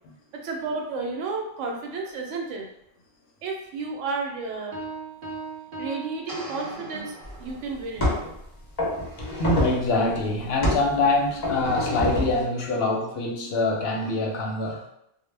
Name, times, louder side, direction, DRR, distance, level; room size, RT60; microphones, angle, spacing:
voice 1, 0.4-2.7 3.4-4.8 5.8-8.3, right 3 dB, 75° right, 1 dB, 0.9 m, -32 dB
Piano, 4.7-7.1, right 4 dB, 60° right, 0.6 m, -38 dB
sound 1, 6.3-8.2, right 1 dB, 20° right, 0.7 m, -41 dB
sound 2, 7.3-7.4 8.0-8.4 8.8-9.9 10.6-10.9 11.4-12.4, left 1 dB, 35° left, 0.4 m, -26 dB
voice 2, 9.4-14.8, left 2 dB, 65° left, 0 dB, 0.7 m, -24 dB
2.1 x 2.1 x 3.1 m, 0.80 s
omnidirectional pair, 1.3 m